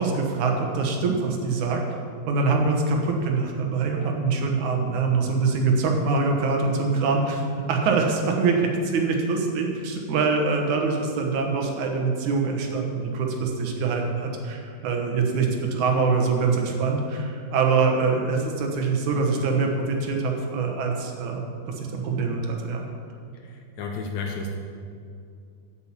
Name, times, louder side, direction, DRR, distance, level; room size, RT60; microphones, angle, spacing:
voice 1, 0.0-1.8 2.3-22.9, right 4 dB, 70° right, 2 dB, 2.4 m, -24 dB
voice 2, 23.3-24.5, left 3 dB, 70° left, 2 dB, 1.9 m, -32 dB
8.6 x 8.5 x 7.3 m, 2.5 s
omnidirectional pair, 3.8 m